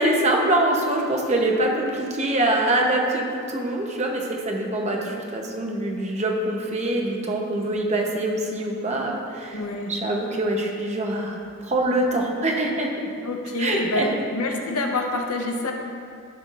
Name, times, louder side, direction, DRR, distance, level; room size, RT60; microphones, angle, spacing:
voice 1, 0.0-9.6 9.9-12.9 13.6-14.1, right 1 dB, 30° right, 0 dB, 0.9 m, -24 dB
voice 2, 9.5-9.9 13.2-15.7, left 2 dB, 85° left, 2 dB, 1.0 m, -26 dB
14.0 x 5.7 x 2.6 m, 2.4 s
head